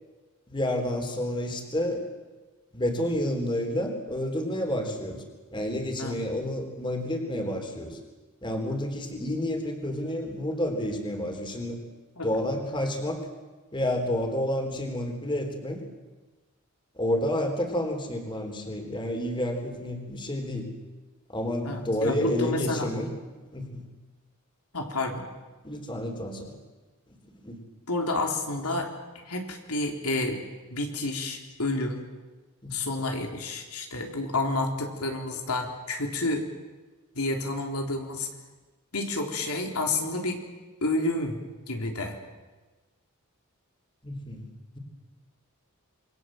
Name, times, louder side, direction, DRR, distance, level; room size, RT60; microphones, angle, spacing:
voice 1, 0.5-2.0 2.7-5.2 5.5-8.0 8.4-11.8 12.2-13.2 13.7-15.8 16.9-20.7 21.3-23.1 23.5-23.8 25.6-26.6 27.4-27.6 32.6-32.8 44.0-44.4, left 1 dB, 20° left, 4 dB, 3.7 m, -30 dB
voice 2, 21.7-22.9 24.7-25.2 27.9-28.9 29.2-30.4 30.7-32.0 32.7-36.4 37.1-38.3 38.9-40.4 40.8-41.4 41.7-42.2, left 2 dB, 90° left, 2 dB, 3.6 m, -29 dB
27.5 x 22.5 x 7.8 m, 1.3 s
head